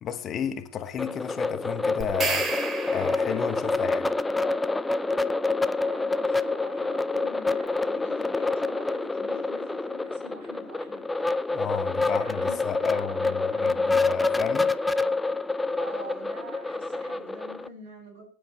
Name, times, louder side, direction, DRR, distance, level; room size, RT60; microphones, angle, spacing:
voice 1, 0.0-2.5 2.9-4.1 11.5-14.7, left 9 dB, 25° left, 1.3 m, -33 dB
sound 1, 1.0-17.7, left 3 dB, 5° left, 0.5 m, -27 dB
sound 2, 2.0-3.6, right 4 dB, 20° right, 2.7 m, -31 dB
voice 2, 5.8-11.1 11.4-14.0 15.8-18.2, right 2 dB, 55° right, 7.9 m, -46 dB
22.0 x 11.0 x 3.1 m
figure-of-eight pair, 90°, 0 cm